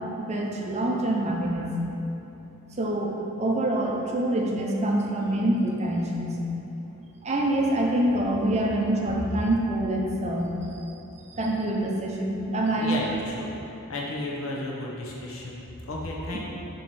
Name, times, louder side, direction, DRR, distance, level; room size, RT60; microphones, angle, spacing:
voice 1, 0.2-1.7 2.8-6.4 7.2-10.8 11.3-13.0 16.3-16.4, right 1 dB, 30° right, -1 dB, 0.6 m, -26 dB
voice 2, 12.8-13.5 13.9-16.4, left 2 dB, 75° left, -3 dB, 0.9 m, -33 dB
6.9 x 3.1 x 4.7 m, 3.0 s
head